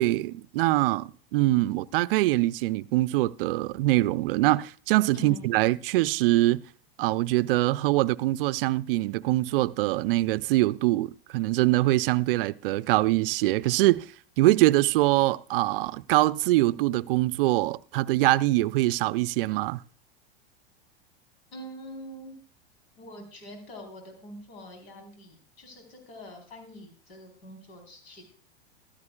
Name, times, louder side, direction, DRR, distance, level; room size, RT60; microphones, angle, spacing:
voice 1, 0.0-6.6 7.0-14.1 14.4-19.8, right 18 dB, 60° right, 0.5 m, -23 dB
voice 2, 5.1-5.5 21.5-22.4 23.0-28.2, equal, 75° left, 4.2 m, -44 dB
14.0 x 13.5 x 2.4 m
hypercardioid pair, 105°, 31 cm